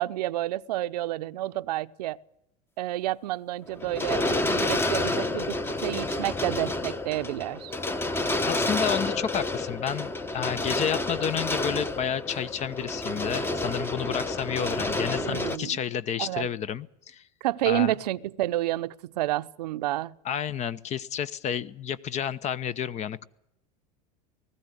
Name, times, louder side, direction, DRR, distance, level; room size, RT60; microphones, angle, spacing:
voice 1, 0.0-2.2 2.8-7.7 15.2-15.8 16.2-16.5 17.4-20.2, right 15 dB, 75° right, 0.8 m, -30 dB
sound 1, 3.7-15.6, left 2 dB, 10° left, 1.1 m, -29 dB
voice 2, 8.5-17.2 17.7-17.9 20.2-23.2, left 8 dB, 35° left, 0.9 m, -31 dB
20.0 x 15.0 x 9.7 m
supercardioid pair, 115°, 21 cm